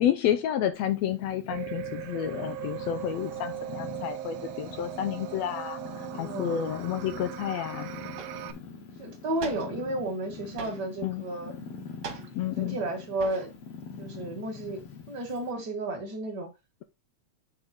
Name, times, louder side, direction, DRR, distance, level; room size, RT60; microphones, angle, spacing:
voice 1, 0.0-7.9 11.0-11.2 12.3-12.8, left 10 dB, 75° left, 1.6 m, -30 dB
Purr, 0.7-15.5, left 5 dB, 55° left, 2.1 m, -44 dB
sound 1, 1.5-8.5, right 13 dB, 85° right, 1.5 m, -39 dB
voice 2, 6.1-6.6 9.0-11.5 12.6-13.5 14.0-14.8 15.1-16.5, right 2 dB, 40° right, 2.1 m, -32 dB
sound 2, 8.2-8.6 9.4-10.0 10.6-11.1 12.0-12.6 13.2-13.7 14.0-14.8, right 6 dB, 65° right, 2.6 m, -43 dB
8.1 x 3.8 x 4.3 m
omnidirectional pair, 3.5 m